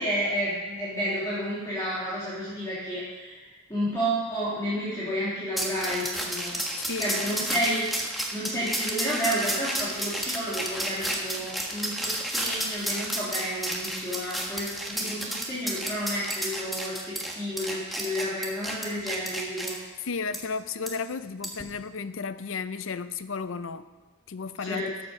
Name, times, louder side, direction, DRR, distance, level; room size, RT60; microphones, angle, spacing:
voice 1, 0.0-3.4 3.7-6.6 7.0-7.9 8.3-19.7 24.7-24.9, equal, 15° left, -11 dB, 2.9 m, -31 dB
sound 1, 5.6-19.7 20.3-20.4 20.9-21.0 21.4-21.6, right 1 dB, ahead, 1.4 m, -31 dB
voice 2, 6.8-7.2 7.5-7.6 20.0-23.9 24.3-24.8, left 5 dB, 65° left, 13 dB, 0.5 m, -33 dB
12.5 x 7.7 x 6.4 m, 1.3 s
head